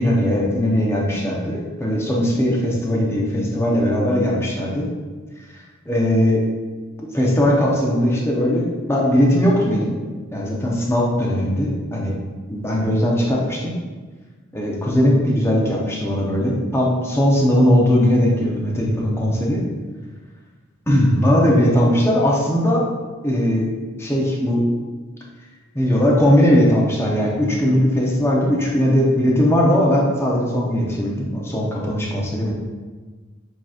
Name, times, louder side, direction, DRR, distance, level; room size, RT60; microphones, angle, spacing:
voice 1, 0.0-4.9 5.9-6.4 7.0-9.9 10.3-12.1 12.5-13.7 14.5-19.6 20.9-22.8 23.2-23.7 24.0-24.6 25.7-32.5, equal, 10° left, -3 dB, 0.7 m, -19 dB
7.3 x 2.9 x 2.4 m, 1.4 s
head